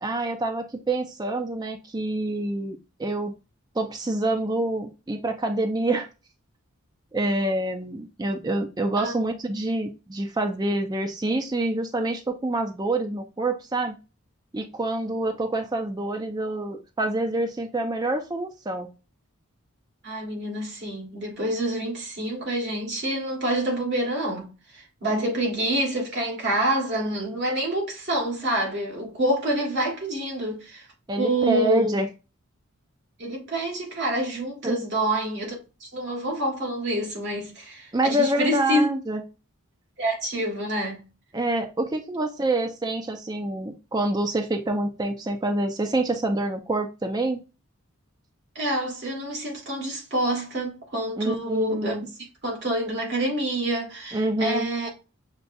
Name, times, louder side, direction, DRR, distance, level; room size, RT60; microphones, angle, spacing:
voice 1, 0.0-3.3 3.8-6.1 7.1-13.9 14.5-18.9 25.1-25.3 31.1-32.1 34.6-34.8 37.9-39.2 41.3-47.4 51.2-52.1 54.1-54.7, right 2 dB, 20° right, 0.4 m, -26 dB
voice 2, 20.0-24.5 24.7-30.9 31.2-31.9 33.2-35.5 35.8-38.8 40.0-41.0 48.5-52.0 52.4-54.9, right 1 dB, 50° right, 1.7 m, -27 dB
6.6 x 2.3 x 2.6 m
head